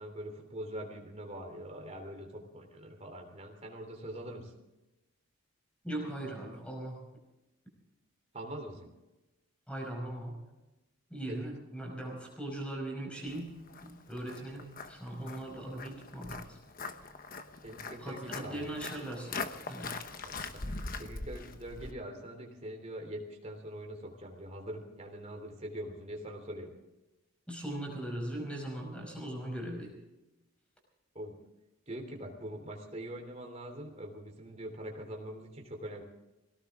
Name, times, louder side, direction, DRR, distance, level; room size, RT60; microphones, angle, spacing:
voice 1, 0.0-4.5 8.3-8.9 11.3-11.5 17.6-18.7 19.9-26.7 31.1-31.3 31.9-36.0, right 1 dB, 30° right, 2 dB, 3.3 m, -43 dB
voice 2, 5.8-7.1 9.7-10.4 11.1-13.5 13.8-16.6 18.0-19.9 27.5-29.9, right 1 dB, 5° left, 1 dB, 5.2 m, -39 dB
Walk footsteps, 13.3-21.9, left 3 dB, 40° left, 1.1 m, -42 dB
21.5 x 18.0 x 3.7 m, 0.99 s
head